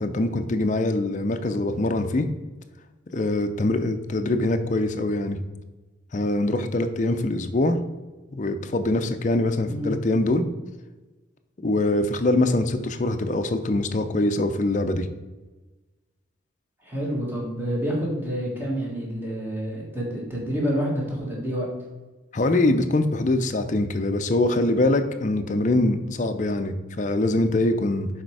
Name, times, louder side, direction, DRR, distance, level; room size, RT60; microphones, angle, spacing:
voice 1, 0.0-2.3 3.1-5.4 6.1-7.8 8.3-10.4 11.6-15.1 22.3-28.1, left 2 dB, 40° left, 7 dB, 0.5 m, -23 dB
voice 2, 16.8-21.7, equal, 10° right, -3 dB, 1.7 m, -28 dB
6.6 x 4.3 x 4.7 m, 1.2 s
head